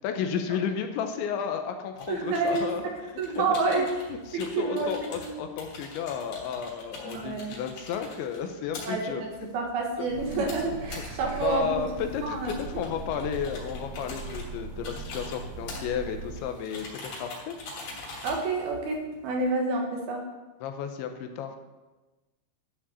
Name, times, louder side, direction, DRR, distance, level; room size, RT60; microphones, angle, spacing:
voice 1, 0.0-9.2 10.3-10.5 10.8-17.5 20.6-21.5, left 7 dB, 85° left, 5 dB, 3.2 m, -33 dB
sound 1, 2.0-19.5, left 2 dB, 55° left, 4.3 m, -45 dB
voice 2, 2.1-2.7 3.2-3.8 4.3-4.9 5.2-5.4 7.0-7.6 8.9-9.3 9.5-11.8 12.2-12.5 18.2-20.2, right 3 dB, 65° right, 1 dB, 2.9 m, -28 dB
sound 2, 10.1-16.4, right 3 dB, 90° right, 5.7 m, -40 dB
12.0 x 5.6 x 7.0 m, 1.2 s
omnidirectional pair, 5.3 m